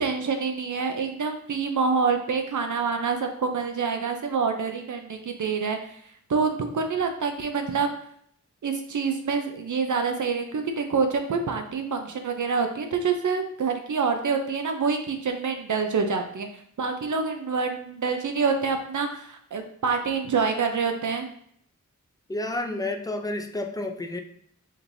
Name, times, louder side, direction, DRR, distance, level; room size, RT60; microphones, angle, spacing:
voice 1, 0.0-6.0 6.3-7.9 8.6-16.5 16.8-21.3, right 5 dB, 70° right, 5 dB, 0.5 m, -26 dB
voice 2, 22.3-24.2, left 2 dB, 10° left, 4 dB, 0.5 m, -30 dB
5.0 x 3.1 x 2.6 m, 0.65 s
wide cardioid pair, 65°, 31 cm